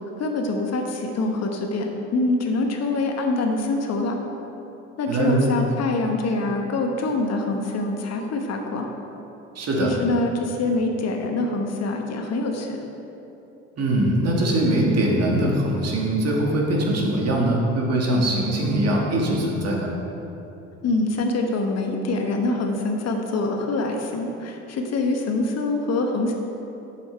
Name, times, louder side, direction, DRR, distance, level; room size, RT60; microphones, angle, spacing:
voice 1, 0.2-4.2 5.0-8.9 9.8-12.8 20.8-26.4, left 2 dB, 45° left, 3 dB, 1.1 m, -25 dB
voice 2, 5.1-5.4 9.6-9.9 13.8-19.9, right 1 dB, 45° right, -2 dB, 2.0 m, -22 dB
8.1 x 6.8 x 4.5 m, 3.0 s
hypercardioid pair, 65°, 35 cm